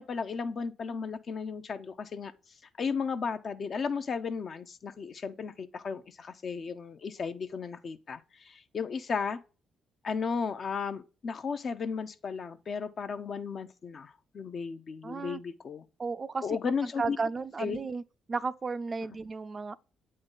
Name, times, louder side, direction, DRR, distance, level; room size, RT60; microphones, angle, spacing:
voice 1, 0.0-2.3 2.8-9.4 10.0-15.8 16.4-17.2 17.6-17.8, left 5 dB, 50° left, 0.6 m, -34 dB
voice 2, 15.0-15.4 16.0-16.6 17.0-18.0 18.3-19.8, right 4 dB, 40° right, 0.4 m, -34 dB
8.0 x 3.8 x 3.8 m
supercardioid pair, 55°, 0 cm